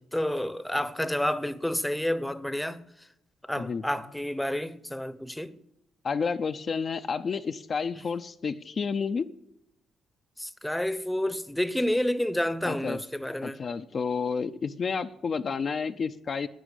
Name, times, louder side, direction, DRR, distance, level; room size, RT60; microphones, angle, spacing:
voice 1, 0.1-3.1 3.5-5.6 10.4-13.6, left 1 dB, 5° left, 0.8 m, -29 dB
voice 2, 6.0-9.3 12.6-13.0 13.4-16.5, left 5 dB, 45° left, 0.6 m, -30 dB
11.0 x 9.8 x 8.1 m
cardioid pair, 90°, 0 cm